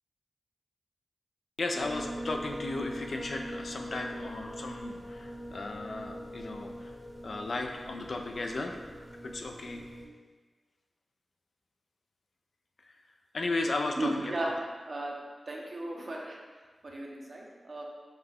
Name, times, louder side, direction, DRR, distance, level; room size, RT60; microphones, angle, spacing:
voice 1, 1.6-6.9 7.2-8.8 9.2-9.8 12.8-13.0 13.3-14.5, left 2 dB, 70° left, 3 dB, 0.4 m, -35 dB
sound 1, 1.8-10.1, equal, 5° left, 0.8 m, -42 dB
voice 2, 14.0-14.5 14.9-15.1 15.5-16.4 16.8-17.8, right 1 dB, 55° right, -1 dB, 0.7 m, -35 dB
5.7 x 2.2 x 3.5 m, 1.4 s
cardioid pair, 55°, 0 cm